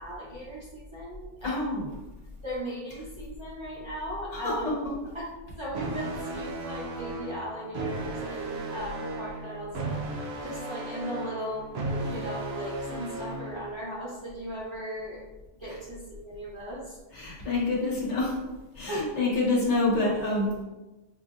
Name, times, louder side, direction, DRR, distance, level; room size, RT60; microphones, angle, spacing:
voice 1, 0.0-1.6 2.4-4.8 5.1-5.3 5.6-9.8 10.4-15.2 15.6-17.0 18.9-19.1, right 1 dB, 25° right, -8 dB, 0.9 m, -37 dB
voice 2, 1.4-1.9 4.3-4.5 17.1-18.4 18.7-20.6, left 2 dB, 70° left, -5 dB, 1.5 m, -27 dB
sound 1, 5.7-13.7, right 2 dB, 65° right, 0.8 m, -35 dB
6.0 x 2.6 x 2.5 m, 1.1 s
omnidirectional pair, 1.2 m